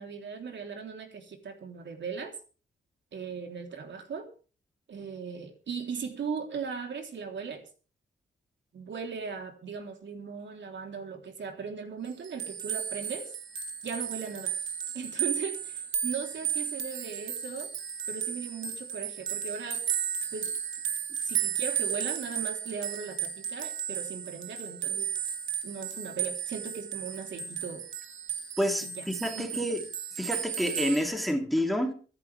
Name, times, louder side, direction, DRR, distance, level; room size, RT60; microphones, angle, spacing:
voice 1, 0.0-2.3 3.1-4.3 4.9-7.7 8.7-13.3 13.8-14.5 14.9-17.7 18.1-19.8 20.3-20.5 21.2-25.1 25.6-27.8 28.8-29.1 29.3-29.7, right 5 dB, 70° right, 3.6 m, -38 dB
sound 1, 12.1-31.0, right 8 dB, 90° right, 2.6 m, -34 dB
voice 2, 28.6-29.8 30.2-31.9, equal, ahead, 3.1 m, -28 dB
24.0 x 11.0 x 3.5 m
wide cardioid pair, 120°, 19 cm